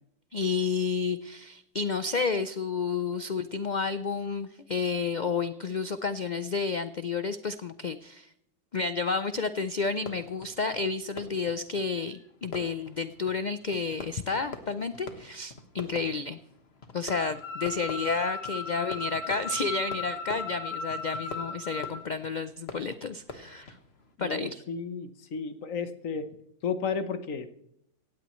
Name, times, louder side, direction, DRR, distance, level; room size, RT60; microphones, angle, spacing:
voice 1, 0.3-8.3 8.7-16.4 16.9-23.8 24.2-24.6, left 4 dB, 85° left, 11 dB, 0.4 m, -31 dB
Fireworks, 9.9-24.2, left 3 dB, 45° left, 1.6 m, -46 dB
sound 1, 17.1-21.9, left 4 dB, 20° left, 7.7 m, -36 dB
voice 2, 24.2-26.3 26.6-27.5, left 5 dB, 60° left, 10 dB, 1.3 m, -33 dB
17.5 x 16.0 x 3.1 m, 0.75 s
omnidirectional pair, 1.6 m